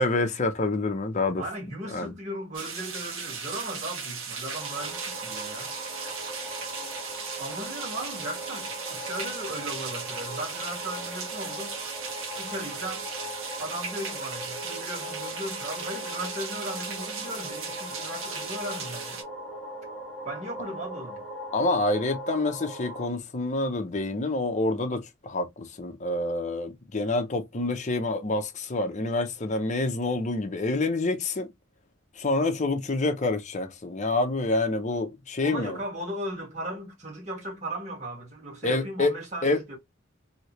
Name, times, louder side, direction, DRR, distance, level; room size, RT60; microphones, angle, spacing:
voice 1, 0.0-1.4 1.9-2.1 21.5-31.5 32.2-35.8 38.6-39.6, left 2 dB, 35° left, 0.6 m, -27 dB
voice 2, 1.4-5.7 7.4-11.8 12.4-13.1 13.6-19.2 20.2-21.2 35.4-39.8, right 1 dB, 35° right, 1.5 m, -37 dB
sound 1, 2.5-19.2, right 5 dB, 70° right, 1.1 m, -37 dB
sound 2, 4.5-23.1, equal, 5° left, 0.9 m, -39 dB
3.1 x 2.8 x 2.9 m
head